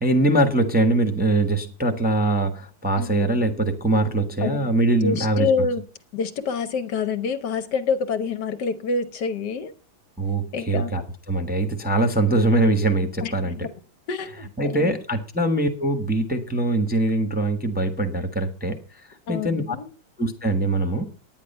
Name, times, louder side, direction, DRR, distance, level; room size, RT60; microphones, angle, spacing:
voice 1, 0.0-5.5 10.2-11.0 11.3-13.6 14.6-18.8 19.3-19.8 20.2-21.1, right 2 dB, 5° right, 4 dB, 1.0 m, -22 dB
voice 2, 3.0-3.3 4.4-4.7 5.0-5.8 6.1-9.7 10.5-10.9 13.2-13.7 14.1-15.0 19.3-19.9, left 5 dB, 65° left, 10 dB, 1.4 m, -27 dB
10.0 x 9.7 x 5.4 m, 0.36 s
omnidirectional pair, 2.0 m